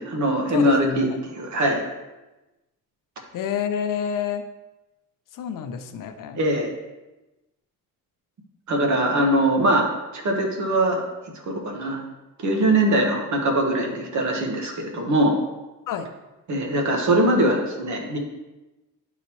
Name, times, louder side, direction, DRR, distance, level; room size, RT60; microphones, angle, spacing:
voice 1, 0.0-1.8 6.3-6.7 8.7-9.9 10.1-11.0 11.5-12.0 12.4-15.4 16.5-18.2, right 1 dB, 55° right, 1 dB, 1.4 m, -22 dB
voice 2, 0.5-1.2 3.3-4.4 5.3-6.4 15.9-16.1, left 8 dB, 65° left, 8 dB, 0.6 m, -28 dB
10.5 x 4.0 x 3.1 m, 1.1 s
cardioid pair, 125°, 34 cm